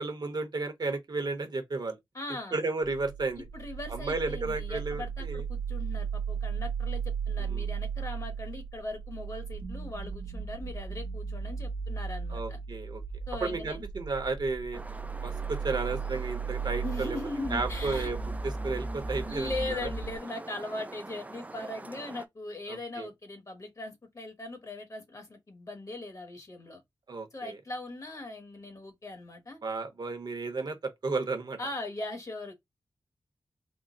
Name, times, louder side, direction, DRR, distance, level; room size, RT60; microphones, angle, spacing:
voice 1, 0.0-2.0 2.5-3.4 3.9-5.4 7.4-7.7 12.3-13.0 13.4-14.8 15.2-17.2 17.5-18.2 18.4-19.8 22.7-23.1 27.1-27.6 29.6-31.6, right 3 dB, 50° right, 0.8 m, -33 dB
voice 2, 2.1-2.6 3.5-12.6 13.3-13.8 16.8-18.1 19.3-26.8 27.3-29.6 31.6-32.5, left 2 dB, 40° left, 1.2 m, -39 dB
sound 1, 2.8-20.2, right 5 dB, 80° right, 0.6 m, -36 dB
sound 2, 14.7-22.3, right 2 dB, 15° right, 0.3 m, -44 dB
3.7 x 2.0 x 3.7 m
wide cardioid pair, 120°, 9 cm